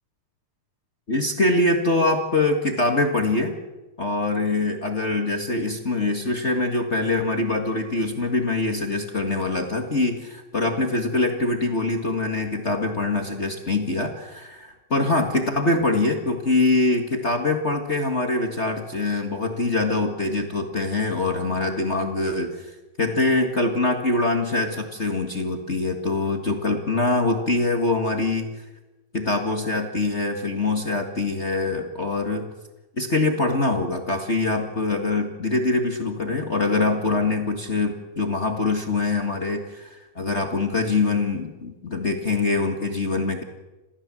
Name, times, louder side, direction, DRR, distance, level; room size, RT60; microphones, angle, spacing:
voice 1, 1.1-3.6 4.0-28.5 29.1-32.5 33.0-43.4, left 2 dB, 30° left, 3 dB, 1.4 m, -24 dB
28.0 x 15.0 x 7.7 m, 1.1 s
omnidirectional pair, 3.7 m